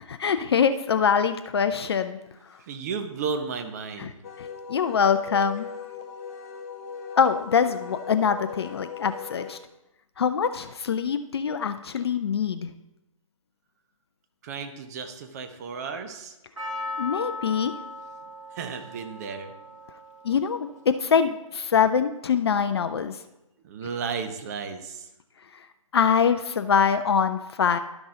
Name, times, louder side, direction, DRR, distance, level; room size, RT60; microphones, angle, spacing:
voice 1, 0.0-2.2 4.0-4.1 4.4-5.7 7.2-9.6 10.2-12.7 17.0-17.7 20.2-23.2 25.9-27.8, left 7 dB, 45° left, 10 dB, 0.5 m, -24 dB
voice 2, 2.7-4.2 14.4-16.3 18.5-19.5 23.6-25.1, right 5 dB, 30° right, 7 dB, 0.7 m, -33 dB
Wind instrument woodwind instrument, 4.2-9.5, left 7 dB, 25° left, 0.9 m, -39 dB
Percussion, 16.6-20.9 21.2-21.3, left 2 dB, 60° right, 1.5 m, -38 dB
12.0 x 6.0 x 3.8 m, 0.90 s
figure-of-eight pair, 145°, 18 cm